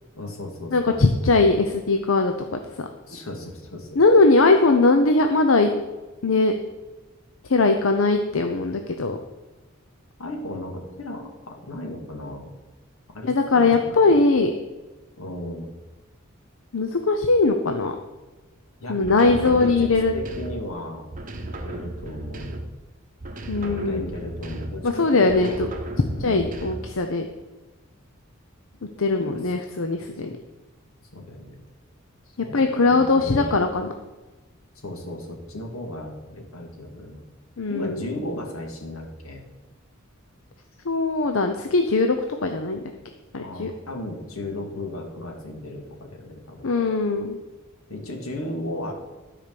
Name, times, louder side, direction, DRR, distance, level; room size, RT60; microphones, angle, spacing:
voice 1, 0.1-1.0 3.1-3.9 10.2-12.5 13.1-14.1 15.2-15.7 18.8-21.1 21.4-22.7 23.6-25.6 26.1-26.5 29.2-29.5 30.2-30.3 31.1-31.6 32.3-33.5 34.8-37.2 37.7-39.4 43.4-46.7 47.9-48.9, left 1 dB, 85° left, 2 dB, 2.2 m, -35 dB
voice 2, 0.7-2.9 4.0-5.7 6.2-6.5 7.4-9.2 13.2-14.5 16.7-18.0 18.9-20.1 23.5-24.1 24.8-25.7 26.2-27.3 29.0-30.3 32.4-33.9 37.6-38.0 40.8-42.2 42.4-42.8 43.3-43.7 46.6-47.4, left 3 dB, 70° left, 5 dB, 0.7 m, -20 dB
sound 1, 19.0-20.7 21.1-22.9 23.2-24.9 25.3-27.0, right 1 dB, 40° right, 1.0 m, -35 dB
12.5 x 5.0 x 6.9 m, 1.2 s
head